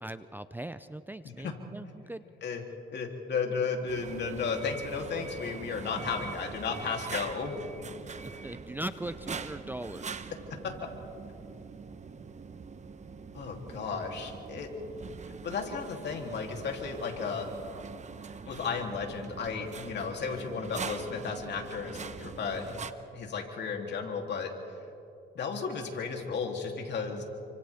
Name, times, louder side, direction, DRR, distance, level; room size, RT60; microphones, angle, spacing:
voice 1, 0.0-2.2 8.2-10.3, right 1 dB, 10° right, 12 dB, 0.5 m, -40 dB
voice 2, 2.9-7.5 10.6-10.7 13.3-14.7 15.3-17.5 18.5-22.7 23.1-24.5 25.3-27.2, left 5 dB, 60° left, 1 dB, 3.3 m, -34 dB
sound 1, 3.9-22.9, right 5 dB, 35° right, 1.0 m, -43 dB
29.5 x 25.0 x 3.6 m, 2.9 s
cardioid pair, 90°, 20 cm